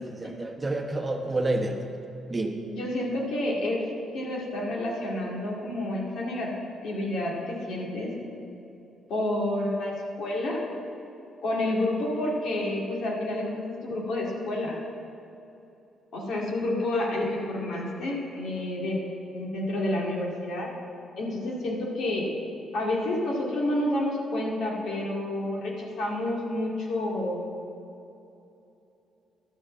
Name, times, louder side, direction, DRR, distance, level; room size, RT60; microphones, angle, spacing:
voice 1, 0.0-1.8 2.3-2.6, right 2 dB, 20° right, 3 dB, 1.0 m, -29 dB
voice 2, 2.7-3.9 4.1-6.5 6.8-8.1 9.1-10.6 11.4-14.8 16.1-19.0 19.3-20.7 21.2-22.3 22.7-27.4, left 1 dB, 75° left, -2 dB, 2.1 m, -29 dB
12.0 x 5.0 x 7.4 m, 2.9 s
cardioid pair, 90°, 0 cm